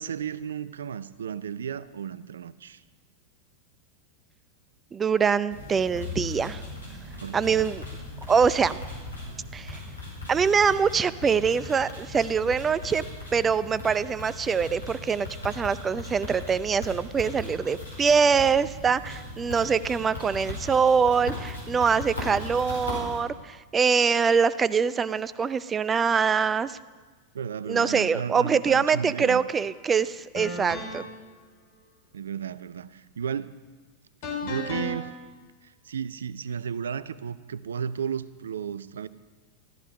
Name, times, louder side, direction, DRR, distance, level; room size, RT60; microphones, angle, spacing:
voice 1, 0.0-2.8 7.2-7.6 27.3-29.4 32.1-33.5 34.4-35.1 35.6-39.1, right 7 dB, 65° right, 17 dB, 0.5 m, -34 dB
voice 2, 4.9-6.6 7.3-7.8 8.3-8.8 9.5-9.8 10.3-13.0 13.3-26.8 27.7-31.1, right 6 dB, 20° right, 17 dB, 0.5 m, -24 dB
sound 1, 5.5-23.2, left 2 dB, 80° left, 4.8 m, -38 dB
sound 2, 29.5-29.7 30.3-31.2 34.2-35.0, left 3 dB, 45° left, 4.0 m, -34 dB
14.0 x 13.5 x 5.3 m, 1.4 s
figure-of-eight pair, 90°, 0 cm